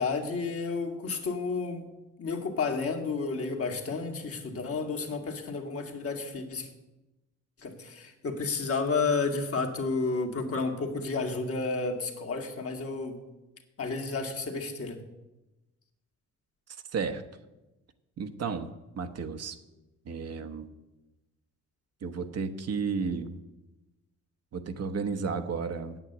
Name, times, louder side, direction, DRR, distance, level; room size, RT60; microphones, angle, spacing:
voice 1, 0.0-1.9 2.2-6.7 7.6-13.2 13.8-15.0, left 4 dB, 50° left, 3 dB, 2.0 m, -31 dB
voice 2, 16.9-17.2 18.2-18.7 19.0-19.5 20.1-20.7 22.0-23.4 24.5-26.0, right 5 dB, 55° right, 8 dB, 1.1 m, -32 dB
9.1 x 7.8 x 8.0 m, 1.0 s
cardioid pair, 90°, 30 cm